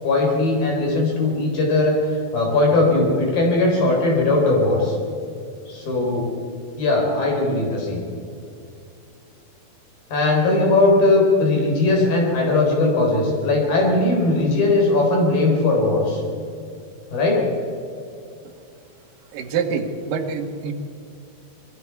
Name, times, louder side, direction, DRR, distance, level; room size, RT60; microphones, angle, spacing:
voice 1, 0.0-5.0 5.7-6.3 6.7-8.0 10.1-16.2 17.1-17.4, left 2 dB, 65° left, -1 dB, 5.9 m, -19 dB
voice 2, 19.3-20.7, right 6 dB, 65° right, 3 dB, 3.1 m, -26 dB
27.0 x 21.5 x 4.7 m, 2.5 s
omnidirectional pair, 4.4 m